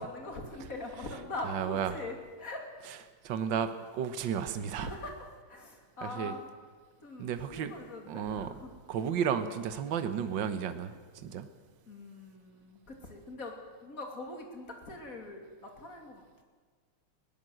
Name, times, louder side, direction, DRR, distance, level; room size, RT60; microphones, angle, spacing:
voice 1, 0.0-2.7 4.8-6.5 7.0-8.7 11.9-13.6 13.8-16.4, left 2 dB, 40° left, 2 dB, 3.3 m, -42 dB
voice 2, 1.4-2.0 2.9-3.0 3.2-4.9 6.0-6.4 7.2-7.7 8.1-8.5 8.9-11.5, right 8 dB, 60° right, 9 dB, 1.8 m, -33 dB
21.0 x 17.5 x 7.8 m, 1.5 s
omnidirectional pair, 2.4 m